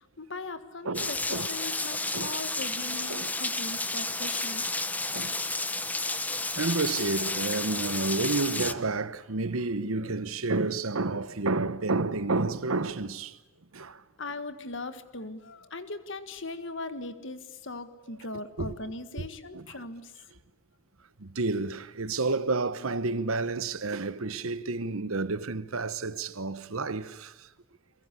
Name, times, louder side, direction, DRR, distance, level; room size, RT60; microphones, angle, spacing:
voice 1, 0.0-4.7 14.2-20.1, left 2 dB, 60° left, 1.8 m, -39 dB
voice 2, 0.8-1.5 2.1-2.3 3.1-3.3 5.1-5.4 6.3-13.4 13.7-14.0 18.6-18.7 19.1-19.3 19.5-19.8 21.2-27.5, right 3 dB, 80° right, 1.1 m, -30 dB
Rain, 0.9-8.7, left 2 dB, 10° left, 0.8 m, -31 dB
29.0 x 22.5 x 8.4 m
head